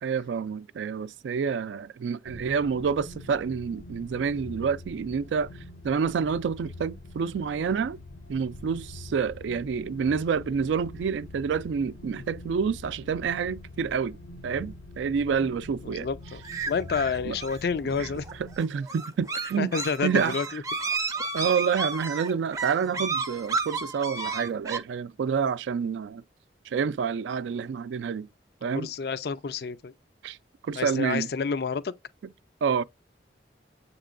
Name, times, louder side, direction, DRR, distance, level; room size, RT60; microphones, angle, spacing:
voice 1, 0.0-5.5 5.8-8.0 8.3-14.2 14.4-16.1 17.2-17.4 18.0-18.1 18.6-19.7 20.0-20.3 21.3-26.2 26.7-28.3 28.6-28.9 30.2-30.4 30.6-31.3 32.6-32.8, right 6 dB, 90° right, 0.3 m, -28 dB
sound 1, 2.3-18.6, left 2 dB, 90° left, 0.8 m, -44 dB
voice 2, 15.8-18.2 19.6-20.6 28.7-29.9 30.8-31.9, left 5 dB, 60° left, 0.4 m, -29 dB
sound 2, 16.4-24.8, right 4 dB, 20° right, 0.4 m, -32 dB
7.4 x 2.9 x 2.4 m
head